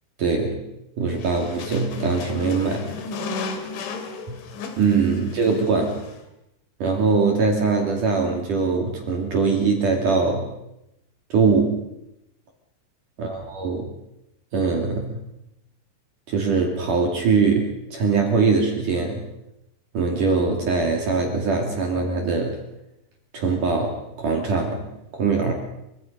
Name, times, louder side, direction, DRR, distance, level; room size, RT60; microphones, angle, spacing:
voice 1, 0.2-0.6 1.0-2.9 4.3-4.4 4.8-6.0 6.8-10.5 11.3-11.8 13.2-13.9 14.5-15.1 16.3-19.3 19.9-22.6 23.3-24.8 25.1-25.5, right 4 dB, 45° right, 2 dB, 3.4 m, -22 dB
sound 1, 1.1-6.2, left 4 dB, 65° left, 4.6 m, -34 dB
29.0 x 24.5 x 5.4 m, 0.86 s
omnidirectional pair, 6.0 m